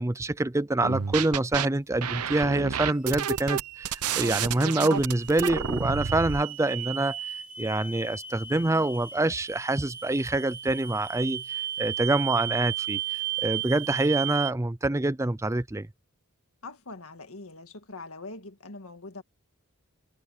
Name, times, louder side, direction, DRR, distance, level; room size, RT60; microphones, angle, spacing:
voice 1, 0.0-15.9, right 2 dB, 15° right, 0.5 m, -26 dB
sound 1, 0.8-1.7 2.0-6.4, right 7 dB, 85° right, 0.9 m, -30 dB
sound 2, 2.8-14.5, right 11 dB, 40° right, 2.9 m, -35 dB
voice 2, 16.6-19.2, left 3 dB, 65° left, 2.0 m, -42 dB
head